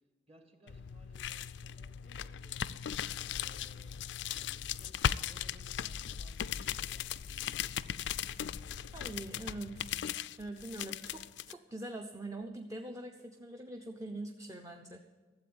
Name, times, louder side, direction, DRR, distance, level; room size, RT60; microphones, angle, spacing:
voice 1, 0.3-2.9 3.3-4.0 4.3-4.9 5.2-8.6, right 1 dB, 35° right, 4 dB, 2.1 m, -62 dB
sound 1, 0.7-11.5, left 9 dB, 80° left, 0.4 m, -38 dB
voice 2, 8.9-9.8 10.4-15.0, right 2 dB, 20° right, 4 dB, 0.7 m, -43 dB
13.0 x 7.8 x 8.7 m, 1.4 s
head